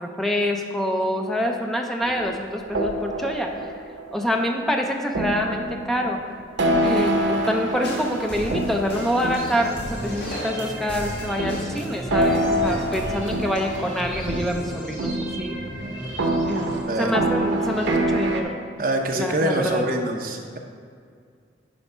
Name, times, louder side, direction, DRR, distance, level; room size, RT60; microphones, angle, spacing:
voice 1, 0.0-3.6 4.1-6.2 6.8-15.6 16.5-18.6 19.1-19.8, equal, ahead, 2 dB, 0.5 m, -26 dB
sound 1, 2.0-4.5 5.1-10.6 11.4-18.4, right 1 dB, 85° right, 0.8 m, -26 dB
sound 2, 7.8-14.7, equal, 80° left, 1.8 m, -35 dB
sound 3, 8.8-16.8, equal, 25° left, 1.9 m, -37 dB
voice 2, 16.9-17.2 18.8-20.6, right 1 dB, 50° right, 2 dB, 0.8 m, -25 dB
9.9 x 3.4 x 5.5 m, 2.2 s
head